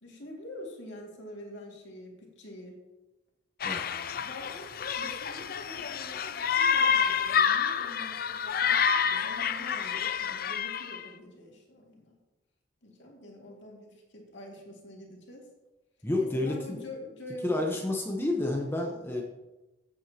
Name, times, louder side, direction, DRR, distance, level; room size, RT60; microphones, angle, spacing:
voice 1, 0.0-2.8 4.2-4.7 5.0-12.2 12.8-15.5 16.2-17.9 18.6-18.7, left 1 dB, 70° left, -1 dB, 2.2 m, -46 dB
sound 1, 3.6-11.0, left 7 dB, 50° left, 0.5 m, -28 dB
voice 2, 16.0-16.8 17.4-19.2, left 2 dB, 10° left, 0 dB, 1.0 m, -30 dB
15.5 x 8.1 x 2.9 m, 1.1 s
head